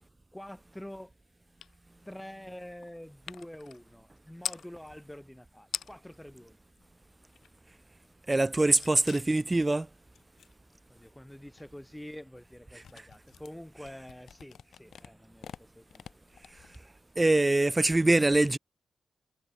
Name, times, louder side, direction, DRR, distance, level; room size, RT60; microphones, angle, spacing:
voice 1, 0.3-1.1 2.1-6.6 10.9-16.2, left 1 dB, 5° left, 7.6 m, -47 dB
sound 1, 1.6-1.8 2.0-4.7 5.4-5.5 5.6-6.2 6.6-7.7 8.0-17.3, left 8 dB, 75° left, 4.4 m, -45 dB
voice 2, 8.3-9.9 17.2-18.6, right 2 dB, 25° right, 0.4 m, -23 dB
supercardioid pair, 50°, 0 cm